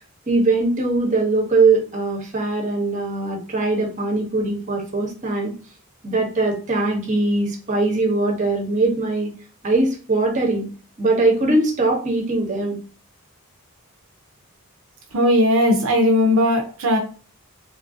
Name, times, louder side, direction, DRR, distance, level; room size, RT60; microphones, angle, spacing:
voice 1, 0.3-5.5 6.0-9.3 9.6-10.7 11.0-12.8, right 2 dB, 35° right, 1 dB, 0.8 m, -21 dB
voice 2, 15.1-17.0, left 1 dB, 70° right, 3 dB, 0.5 m, -17 dB
3.1 x 2.5 x 2.5 m, 0.38 s
head